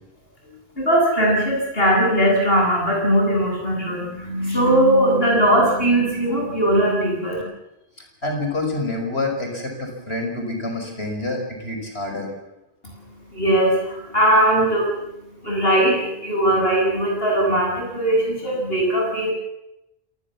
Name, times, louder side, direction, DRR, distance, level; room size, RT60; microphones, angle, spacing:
voice 1, 0.8-7.4 12.8-19.3, right 1 dB, 70° left, 0 dB, 8.3 m, -20 dB
voice 2, 8.2-12.3, left 2 dB, 85° left, 3 dB, 6.1 m, -27 dB
27.5 x 19.5 x 7.4 m, 0.92 s
omnidirectional pair, 1.0 m